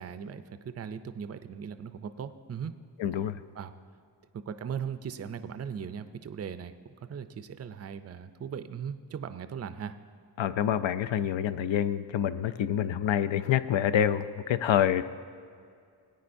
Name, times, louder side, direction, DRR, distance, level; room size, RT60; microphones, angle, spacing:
voice 1, 0.0-2.8 3.5-3.7 4.3-6.7 7.0-9.9, right 7 dB, 35° right, 11 dB, 0.4 m, -38 dB
voice 2, 3.0-3.4 10.4-15.0, left 10 dB, 80° left, 12 dB, 0.5 m, -27 dB
18.0 x 9.0 x 2.6 m, 2.3 s
wide cardioid pair, 130°, 45 cm